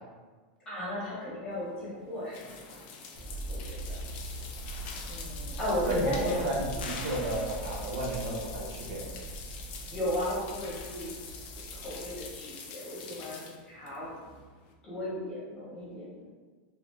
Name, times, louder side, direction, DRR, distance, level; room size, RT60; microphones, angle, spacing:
voice 1, 0.6-2.8 3.5-4.0 5.1-6.6 9.9-11.1 11.7-14.1 14.8-16.2, left 1 dB, 15° left, -9 dB, 1.1 m, -35 dB
sound 1, 1.5-14.7, left 5 dB, 30° left, 0.3 m, -45 dB
sound 2, 3.1-12.3, right 2 dB, 15° right, 0.8 m, -41 dB
voice 2, 5.9-9.1, right 1 dB, 55° right, -3 dB, 0.7 m, -33 dB
sound 3, 6.8-8.2, left 4 dB, 80° left, 0.5 m, -43 dB
4.0 x 2.4 x 3.1 m, 1.4 s
supercardioid pair, 175°, 5 cm